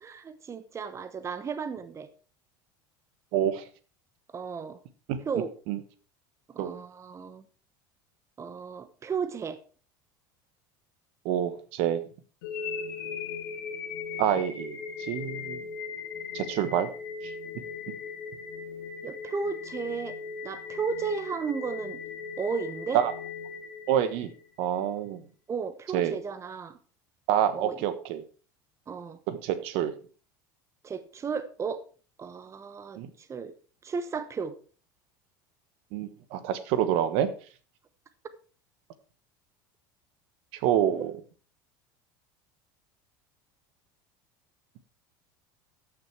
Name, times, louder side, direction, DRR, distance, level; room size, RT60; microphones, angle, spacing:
voice 1, 0.0-2.1 4.3-4.8 5.3-5.5 6.5-7.4 8.4-9.6 19.0-20.2 20.4-22.0 22.4-23.0 25.5-26.8 27.5-27.8 28.9-29.2 30.8-31.8 32.2-33.5 33.8-34.5, right 5 dB, 25° right, 12 dB, 1.0 m, -34 dB
voice 2, 3.3-3.6 5.1-5.2 5.7-5.8 6.6-6.8 11.2-12.0 14.2-15.7 16.3-16.9 17.2-17.3 22.9-23.1 23.9-24.3 24.6-25.2 25.9-26.2 27.3-28.2 29.3-29.9 33.0-33.1 35.9-37.3 40.5-41.1, right 10 dB, 65° right, 12 dB, 1.3 m, -27 dB
sound 1, 12.4-24.5, left 6 dB, 85° left, 2.4 m, -38 dB
13.5 x 6.4 x 4.6 m, 0.39 s
hypercardioid pair, 95°, 11 cm